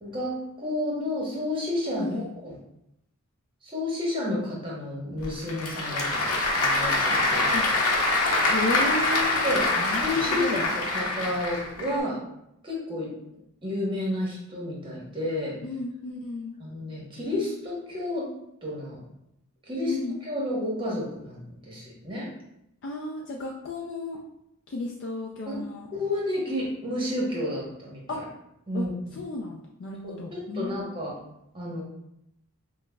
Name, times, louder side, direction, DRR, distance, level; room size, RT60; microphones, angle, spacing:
voice 1, 0.0-2.5 3.6-7.5 9.4-9.6 10.0-12.2 12.6-13.1 13.6-15.6 16.6-18.3 18.6-19.0 19.7-19.9 20.2-22.3 25.5-25.6 25.9-28.2 28.7-29.2 30.0-31.2 31.5-31.9, left 1 dB, 25° right, -4 dB, 0.9 m, -31 dB
voice 2, 1.9-2.3 7.5-7.6 8.4-9.4 9.8-10.7 15.6-16.6 19.9-20.2 22.8-24.2 24.7-25.9 28.1-28.2 28.7-28.9 29.1-30.9, left 2 dB, 55° left, -1 dB, 0.3 m, -33 dB
Applause / Crowd, 5.2-12.0, left 2 dB, 80° left, 0.7 m, -25 dB
5.8 x 2.0 x 2.2 m, 0.80 s
head